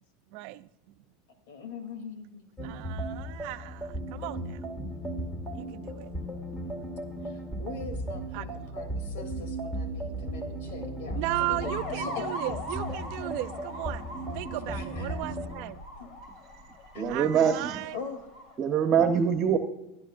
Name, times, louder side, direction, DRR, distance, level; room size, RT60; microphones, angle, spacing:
voice 1, 0.3-0.7 2.6-4.6 5.6-6.1 8.3-8.5 11.2-14.0 14.3-15.8 17.1-18.0, right 17 dB, 60° right, 0.5 m, -35 dB
voice 2, 1.5-2.4 7.2-12.2 14.5-15.2 16.0-16.1 16.9-17.3 17.9-18.3, left 5 dB, 80° left, 3.1 m, -42 dB
sound 1, 2.6-15.7, right 1 dB, 10° left, 2.0 m, -36 dB
sound 2, 11.6-18.6, left 2 dB, 45° left, 2.3 m, -41 dB
voice 3, 16.9-17.8 18.6-19.6, right 7 dB, 35° right, 1.2 m, -24 dB
27.5 x 10.0 x 2.6 m
supercardioid pair, 135°, 0 cm